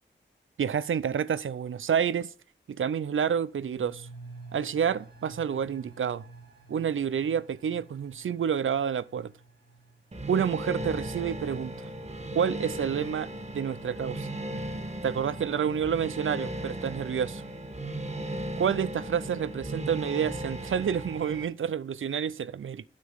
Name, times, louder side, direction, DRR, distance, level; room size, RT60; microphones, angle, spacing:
voice 1, 0.6-2.3 2.7-4.1 4.5-6.2 6.7-9.3 10.3-11.9 12.3-13.3 13.5-14.3 15.0-17.4 18.6-22.8, right 8 dB, 80° right, 0.5 m, -29 dB
sound 1, 3.5-12.4 12.7-12.8, right 3 dB, 55° right, 1.8 m, -51 dB
sound 2, 10.1-21.4, right 1 dB, 35° right, 1.2 m, -36 dB
10.0 x 6.3 x 5.5 m
wide cardioid pair, 95°, 20 cm